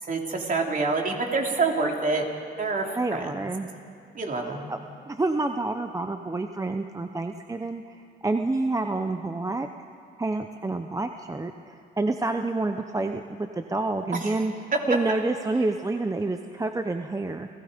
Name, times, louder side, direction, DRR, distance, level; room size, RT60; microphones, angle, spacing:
voice 1, 0.0-2.2 2.6-2.9 3.1-3.3 4.1-4.7 14.2-14.4, right 3 dB, 45° right, 1 dB, 3.3 m, -27 dB
voice 2, 3.0-3.7 4.7-4.8 5.0-7.8 8.2-9.7 10.2-14.5 14.9-17.5, right 2 dB, 15° right, 6 dB, 0.8 m, -28 dB
29.5 x 17.0 x 5.2 m, 2.8 s
cardioid pair, 90°, 20 cm